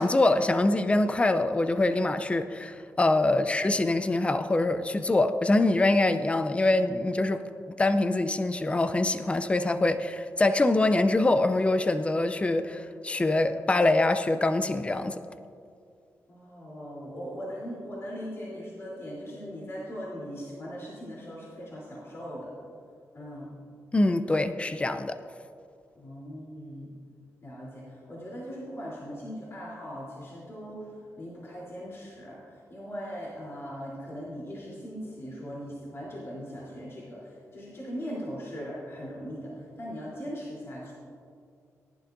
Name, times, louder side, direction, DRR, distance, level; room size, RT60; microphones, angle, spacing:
voice 1, 0.0-7.4 7.8-15.2 23.9-25.2, left 2 dB, 20° left, 10 dB, 0.5 m, -24 dB
voice 2, 16.3-22.5 23.1-23.5 25.9-26.9 27.4-40.9, equal, 50° left, -6 dB, 3.4 m, -39 dB
18.5 x 11.0 x 2.6 m, 2.4 s
cardioid pair, 85°, 6 cm